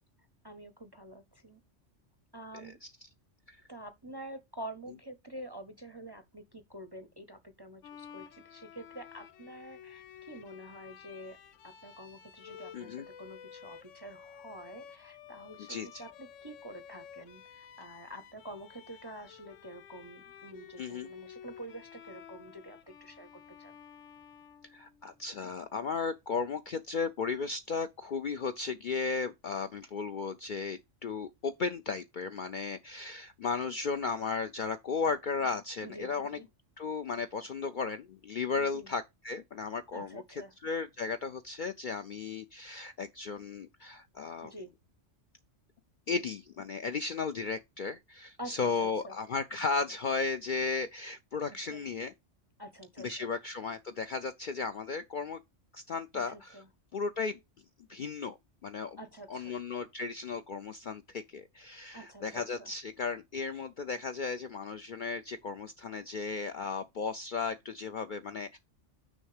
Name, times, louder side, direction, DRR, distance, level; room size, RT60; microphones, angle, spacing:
voice 1, 0.4-1.6 2.3-2.8 3.7-11.4 11.6-23.8 35.8-36.5 38.6-38.9 39.9-40.5 44.4-44.7 48.4-49.2 51.6-51.9 52.6-53.4 56.3-56.7 59.0-59.6 61.9-62.7 63.5-63.7, right 1 dB, 25° right, 0.5 m, -47 dB
Bowed string instrument, 7.8-25.2, left 8 dB, 80° left, 1.0 m, -52 dB
voice 2, 12.7-13.1 15.6-16.0 20.8-21.1 24.7-36.4 36.8-44.5 46.1-52.1 53.0-55.4 55.7-56.6 56.9-57.4 57.9-58.4 58.6-59.0 59.3-68.6, left 4 dB, 60° left, 0.5 m, -35 dB
6.4 x 5.3 x 4.8 m
omnidirectional pair, 1.3 m